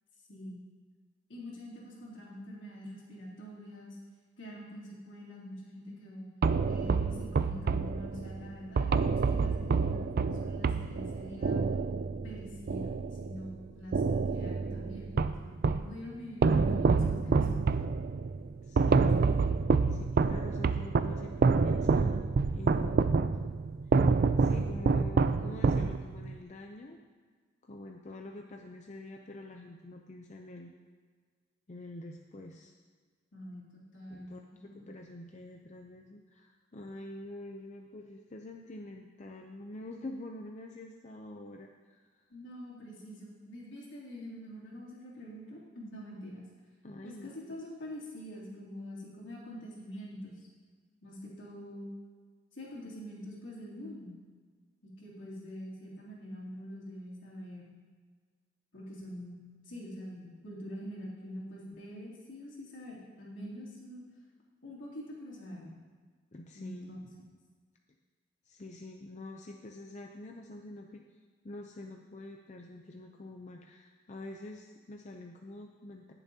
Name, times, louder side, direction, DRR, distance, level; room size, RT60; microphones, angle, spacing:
voice 1, 0.3-0.6 1.3-4.0 4.4-6.3 6.7-11.6 12.2-12.9 13.2-17.5 33.3-34.9 42.3-46.4 47.0-50.5 51.0-51.9 52.5-54.2 54.8-57.7 58.7-64.0 64.6-65.8 66.5-67.0, equal, 75° left, -6 dB, 2.9 m, -45 dB
sound 1, 6.4-13.5 13.9-15.9 16.4-26.3, right 4 dB, 50° right, 0.3 m, -28 dB
voice 2, 18.6-19.2 19.9-22.1 22.5-23.2 24.4-27.0 27.7-30.8 31.7-32.7 34.1-34.4 34.9-42.0 46.8-47.6 66.3-66.9 68.4-71.0 71.4-76.1, left 2 dB, 35° left, 2 dB, 0.5 m, -46 dB
18.5 x 7.0 x 2.8 m, 1.5 s
head